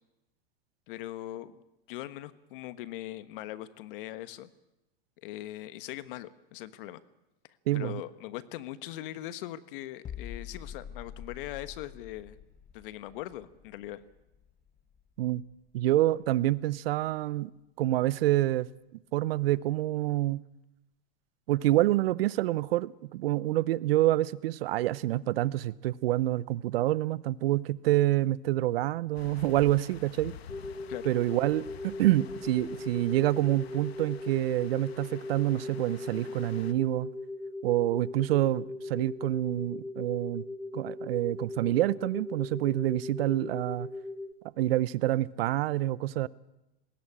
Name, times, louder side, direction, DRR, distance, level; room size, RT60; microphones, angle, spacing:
voice 1, 0.9-1.6 1.9-4.5 5.2-7.0 7.7-12.4 12.7-14.0 30.9-31.1, left 14 dB, 60° left, 14 dB, 1.4 m, -40 dB
voice 2, 7.7-8.0 15.2-15.4 15.7-17.5 17.8-18.7 19.1-20.4 21.5-30.3 31.1-37.1 37.6-40.4 40.7-43.9 44.6-46.3, right 15 dB, 70° right, 20 dB, 0.8 m, -27 dB
sound 1, 10.0-15.7 16.0-16.2, left 8 dB, 25° left, 1.3 m, -46 dB
sound 2, 29.1-36.7, left 9 dB, 85° left, 1.5 m, -49 dB
sound 3, 30.5-44.3, left 2 dB, 5° left, 0.7 m, -39 dB
20.5 x 17.0 x 8.8 m, 0.97 s
hypercardioid pair, 115°, 30 cm